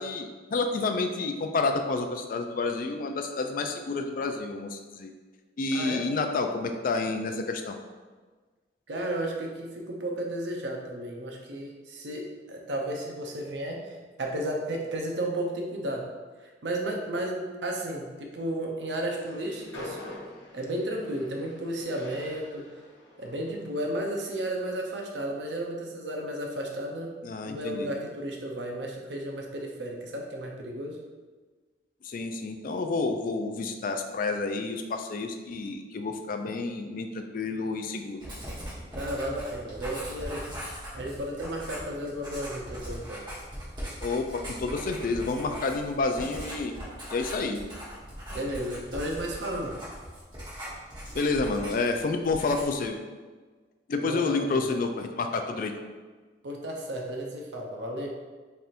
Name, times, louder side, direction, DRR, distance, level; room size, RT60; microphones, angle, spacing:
voice 1, 0.0-5.1 5.6-7.8 27.2-27.9 32.0-38.2 44.0-46.7 47.1-47.6 51.1-53.0 53.9-55.7, left 3 dB, 50° left, 5 dB, 0.3 m, -29 dB
voice 2, 5.7-6.0 8.9-16.1 16.4-20.0 20.5-22.7 23.2-27.2 27.4-31.0 39.0-40.5 40.9-43.3 48.3-49.7 54.0-54.6 56.4-58.1, right 1 dB, 75° right, 1 dB, 0.7 m, -33 dB
Train, 19.1-24.4, left 1 dB, 85° left, 1.0 m, -46 dB
Writing, 38.2-52.0 52.3-52.8, equal, 30° right, 1.3 m, -40 dB
3.3 x 2.5 x 4.2 m, 1.4 s
head